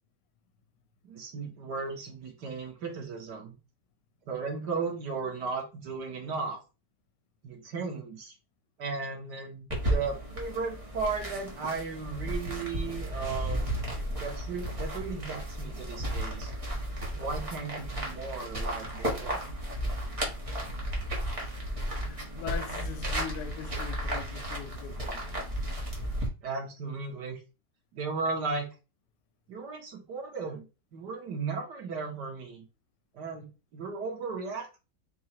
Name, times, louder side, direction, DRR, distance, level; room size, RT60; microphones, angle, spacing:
voice 1, 1.0-3.5 4.3-6.6 7.4-8.3 8.8-13.8 14.2-16.5 17.1-19.5 26.4-27.4 27.9-28.7 29.5-30.7 30.9-32.7 33.1-34.8, right 4 dB, 80° right, 2.0 m, -35 dB
sound 1, 9.7-26.3, right 1 dB, 20° right, 1.2 m, -34 dB
voice 2, 21.9-25.5, left 8 dB, 85° left, 1.3 m, -41 dB
4.6 x 2.5 x 4.3 m
omnidirectional pair, 1.8 m